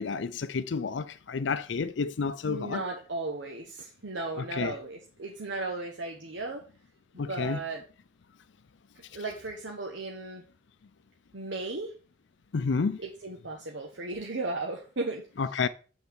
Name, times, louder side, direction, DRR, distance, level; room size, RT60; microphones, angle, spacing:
voice 1, 0.0-2.8 4.4-4.7 7.2-7.6 12.5-13.0 15.4-15.7, left 5 dB, 70° left, 0.5 m, -30 dB
voice 2, 2.5-6.6 7.1-7.8 9.1-10.4 11.3-11.9 13.0-15.3, right 2 dB, 75° right, 1.2 m, -36 dB
8.0 x 4.2 x 7.0 m
head